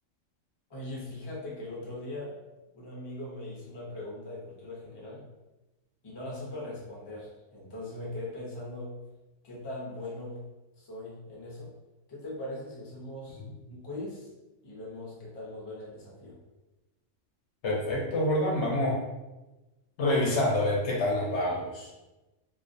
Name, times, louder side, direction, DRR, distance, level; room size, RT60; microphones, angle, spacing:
voice 1, 0.7-2.4 2.7-5.2 6.0-9.0 9.4-10.4 10.8-11.7 12.1-13.4 13.7-14.3 14.6-16.4, left 1 dB, 30° left, -5 dB, 0.5 m, -40 dB
voice 2, 17.6-19.0 20.0-21.9, left 1 dB, 70° left, -2 dB, 0.9 m, -27 dB
2.4 x 2.1 x 2.5 m, 1.1 s
omnidirectional pair, 1.3 m